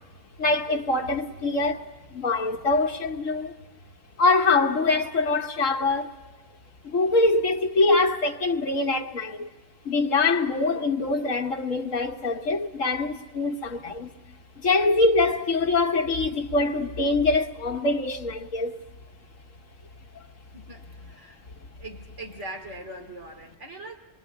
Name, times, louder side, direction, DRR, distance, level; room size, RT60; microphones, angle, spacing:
voice 1, 0.4-3.5 4.2-6.1 6.8-9.5 9.8-14.1 14.6-18.8, left 3 dB, 80° left, 1.6 m, -24 dB
voice 2, 20.5-21.4 21.8-24.0, right 1 dB, 65° right, 3.0 m, -41 dB
25.5 x 22.0 x 8.5 m
omnidirectional pair, 1.3 m